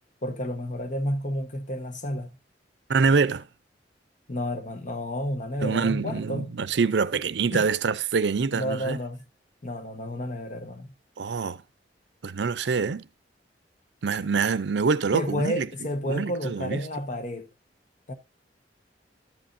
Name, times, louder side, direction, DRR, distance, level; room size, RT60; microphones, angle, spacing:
voice 1, 0.2-2.3 4.3-6.5 7.5-7.7 8.5-9.2 9.6-10.9 15.1-17.5 18.1-18.2, equal, 45° left, 1.2 m, -31 dB
voice 2, 2.9-3.5 5.6-9.0 11.2-11.6 12.2-13.0 14.0-15.7 16.1-16.8, right 5 dB, 70° right, 0.5 m, -25 dB
12.5 x 7.8 x 2.7 m
head